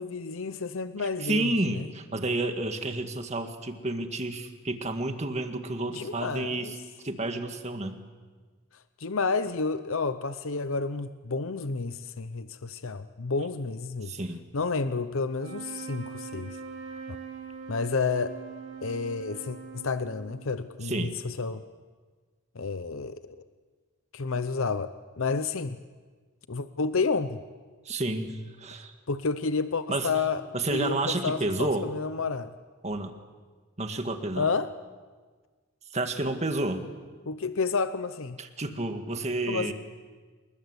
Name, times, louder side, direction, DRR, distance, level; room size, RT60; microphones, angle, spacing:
voice 1, 0.0-1.9 5.9-6.7 9.0-14.1 14.5-16.6 17.7-18.3 18.8-21.6 22.6-23.2 24.1-25.8 26.5-27.4 29.1-30.4 30.7-32.5 34.4-34.7 37.3-38.4 39.5-39.7, left 4 dB, 70° left, 11 dB, 0.8 m, -30 dB
voice 2, 1.0-8.0 14.0-14.4 20.8-21.1 27.9-28.9 29.9-30.1 30.5-31.9 32.8-33.2 33.8-34.5 35.9-36.8 38.4-39.7, right 2 dB, 30° right, 6 dB, 1.9 m, -30 dB
sound 1, 15.3-20.7, right 6 dB, 60° right, 5.9 m, -42 dB
27.5 x 20.5 x 8.2 m, 1.4 s
head